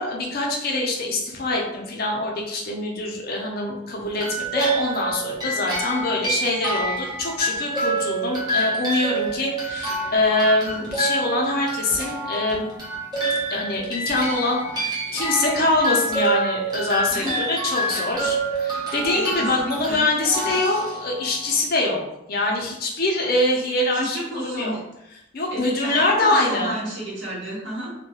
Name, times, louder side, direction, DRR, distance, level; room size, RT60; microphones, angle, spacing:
voice 1, 0.0-12.7 13.5-22.0 22.3-24.7 25.3-26.8, left 2 dB, 45° left, -1 dB, 0.4 m, -24 dB
sound 1, 4.1-21.6, right 2 dB, 20° right, 0.6 m, -27 dB
voice 2, 17.1-17.4 17.9-18.1 19.1-20.0 23.9-24.8 25.5-27.9, right 1 dB, 65° right, -5 dB, 0.9 m, -31 dB
2.3 x 2.1 x 2.8 m, 0.86 s
head